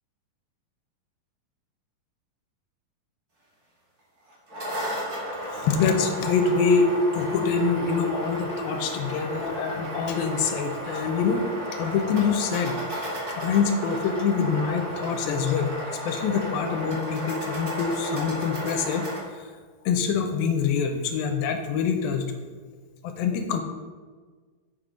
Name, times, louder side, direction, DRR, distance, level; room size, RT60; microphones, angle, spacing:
sound 1, 4.3-19.2, equal, 30° right, 1.9 m, -33 dB
voice 1, 5.5-11.5 11.7-19.1 19.3-19.4 19.9-22.3 23.0-23.6, left 5 dB, 80° left, 5 dB, 2.4 m, -25 dB
7.6 x 6.0 x 5.1 m, 1.5 s
omnidirectional pair, 4.4 m